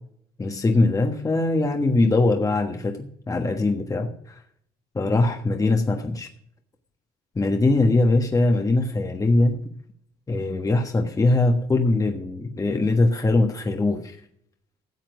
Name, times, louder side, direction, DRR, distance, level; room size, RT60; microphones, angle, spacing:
voice 1, 0.4-4.3 4.9-6.3 7.3-9.6 10.3-14.2, left 2 dB, 20° left, 4 dB, 1.4 m, -21 dB
14.0 x 7.6 x 6.1 m, 0.66 s
cardioid pair, 110°, 17 cm